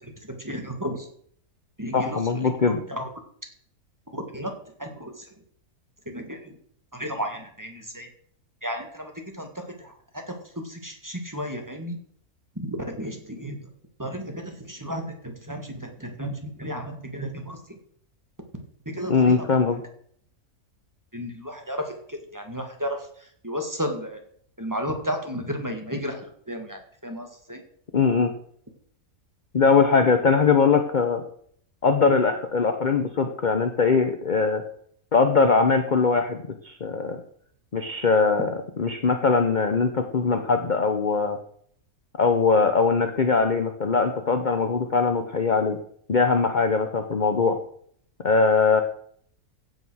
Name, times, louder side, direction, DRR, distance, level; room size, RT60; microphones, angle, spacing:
voice 1, 0.3-1.0 1.8-2.1 2.9-3.1 4.1-4.5 4.8-5.1 6.1-6.5 6.9-8.1 8.6-9.1 9.4-9.6 10.7-12.0 12.6-13.6 14.0-17.6 18.9-19.4 21.1-23.0 23.4-24.2 24.6-26.2 26.5-27.6, equal, 10° right, 4 dB, 1.9 m, -33 dB
voice 2, 1.9-2.8 19.1-19.8 27.9-28.3 29.5-31.2 31.8-34.6 35.1-36.4 36.6-37.2 37.7-41.4 42.2-45.8 46.1-47.6 48.2-48.8, left 4 dB, 35° left, 7 dB, 0.9 m, -21 dB
16.0 x 6.5 x 6.3 m, 0.63 s
omnidirectional pair, 1.6 m